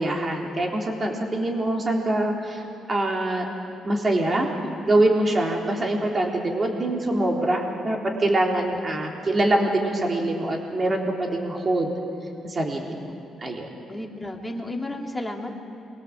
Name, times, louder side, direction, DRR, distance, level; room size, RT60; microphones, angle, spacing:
voice 1, 0.0-3.5 3.8-4.5 4.8-11.9 12.4-13.0 13.4-13.7, right 1 dB, 30° right, 0 dB, 3.9 m, -24 dB
voice 2, 13.9-15.5, left 1 dB, 10° left, 1 dB, 3.0 m, -33 dB
28.5 x 23.5 x 7.8 m, 2.8 s
cardioid pair, 90°, 0 cm